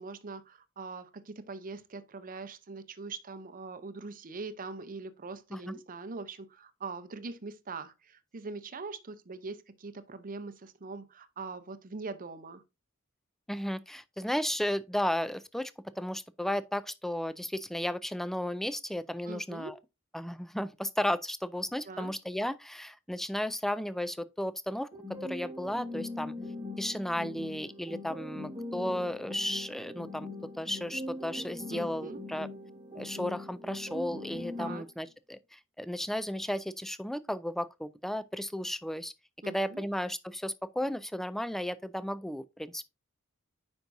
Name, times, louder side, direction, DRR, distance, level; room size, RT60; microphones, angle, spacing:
voice 1, 0.0-12.6 19.3-19.7 21.9-22.1 31.7-32.2 34.6-34.9 39.4-39.8, right 4 dB, 40° right, 0.7 m, -42 dB
voice 2, 13.5-19.8 20.1-24.9 25.2-26.3 26.8-30.3 30.5-32.5 33.0-39.1 39.4-42.8, left 1 dB, ahead, 0.3 m, -34 dB
sound 1, 24.9-34.9, left 2 dB, 20° right, 1.2 m, -41 dB
9.1 x 5.3 x 2.6 m
head